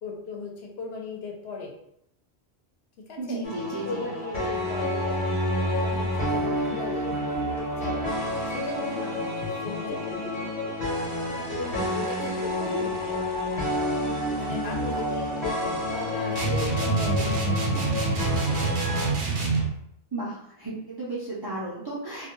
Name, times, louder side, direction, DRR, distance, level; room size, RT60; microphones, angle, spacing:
voice 1, 0.0-1.7 3.0-3.4 3.8-8.0 8.4-10.7 11.5-13.6 14.4-15.5 15.9-17.9, left 3 dB, 75° left, 0 dB, 0.8 m, -38 dB
voice 2, 3.2-4.1 20.1-22.3, right 2 dB, 40° right, -7 dB, 0.3 m, -34 dB
sound 1, 3.4-19.1, left 1 dB, 45° left, 0.9 m, -29 dB
sound 2, 16.4-19.7, right 4 dB, 65° right, 0.8 m, -26 dB
2.2 x 2.1 x 2.9 m, 0.75 s
omnidirectional pair, 1.1 m